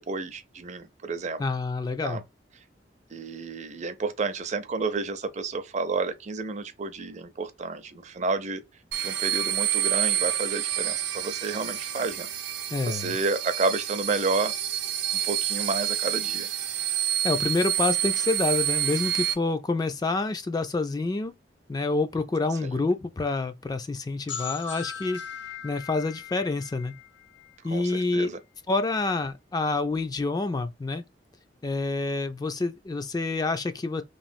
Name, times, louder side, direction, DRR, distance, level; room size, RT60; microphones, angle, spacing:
voice 1, 0.0-1.4 2.0-2.2 3.1-8.6 9.0-12.3 12.9-14.5 15.2-16.5 27.7-28.4, right 3 dB, 40° right, 0.5 m, -30 dB
voice 2, 1.4-2.2 12.7-13.2 17.2-21.3 21.7-25.2 25.6-26.9 27.6-28.3 28.7-31.0 31.6-34.0, left 3 dB, 20° left, 0.3 m, -27 dB
sound 1, 8.9-19.3, right 11 dB, 85° right, 0.7 m, -28 dB
sound 2, 24.3-27.9, left 7 dB, 90° left, 1.1 m, -39 dB
3.0 x 2.4 x 2.5 m
head